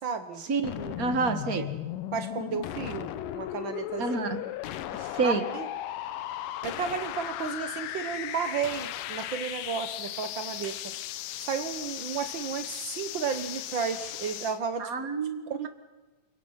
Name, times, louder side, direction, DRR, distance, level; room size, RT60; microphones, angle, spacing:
voice 1, 0.0-0.4 0.8-0.9 1.6-1.7 2.1-3.1 3.3-4.2 5.2-5.7 6.6-10.8 11.4-14.9 15.5-15.7, right 6 dB, 75° right, 9 dB, 1.1 m, -33 dB
sound 1, 0.6-14.6, left 13 dB, 80° left, 2.5 m, -36 dB
voice 2, 1.0-1.6 4.0-4.4 4.9-5.4 14.8-15.7, right 4 dB, 35° right, 8 dB, 1.6 m, -28 dB
29.0 x 25.0 x 5.7 m, 1.2 s
omnidirectional pair, 3.9 m